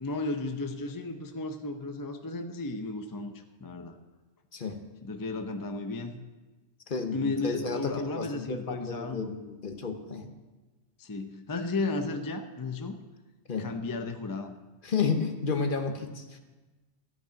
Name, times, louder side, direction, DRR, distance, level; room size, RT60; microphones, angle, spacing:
voice 1, 0.0-3.3 3.6-4.0 5.0-6.1 7.1-9.3 11.0-13.0 13.6-14.5, left 3 dB, 25° left, 6 dB, 0.5 m, -34 dB
voice 2, 6.9-10.3 13.5-13.7 14.8-16.4, left 5 dB, 45° left, 6 dB, 1.1 m, -32 dB
13.5 x 6.0 x 8.7 m, 1.2 s
omnidirectional pair, 1.3 m